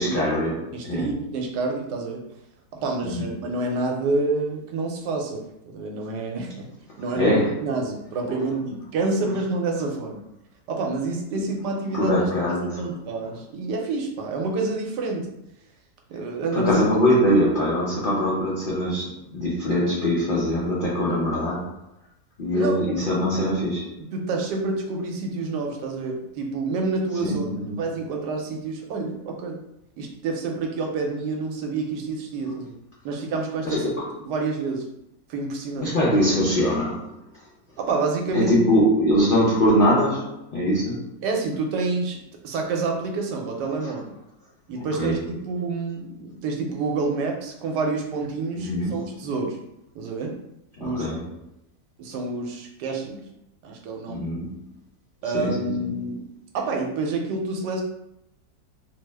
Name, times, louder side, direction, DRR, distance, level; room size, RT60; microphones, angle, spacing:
voice 1, 0.0-1.1 3.0-3.2 7.2-7.6 8.3-8.4 11.9-12.8 16.5-21.7 22.4-24.0 27.2-27.8 33.6-34.1 35.8-37.1 38.3-41.1 45.0-45.2 48.5-49.1 50.8-51.3 54.1-54.6 55.3-55.9, equal, 75° left, 0.5 m, -23 dB
voice 2, 0.7-2.2 2.7-6.7 7.0-10.3 10.7-12.3 12.6-15.3 16.1-16.9 22.5-22.8 24.1-27.5 27.8-29.6 30.0-32.7 33.0-33.9 34.3-34.8 35.3-35.9 37.8-38.6 41.2-42.2 42.4-44.2 44.7-49.6 49.9-50.4 50.8-51.1 52.0-53.2 53.6-54.3 55.2-56.2 56.5-57.8, right 3 dB, 80° right, 1.2 m, -28 dB
3.1 x 2.0 x 3.3 m
omnidirectional pair, 1.8 m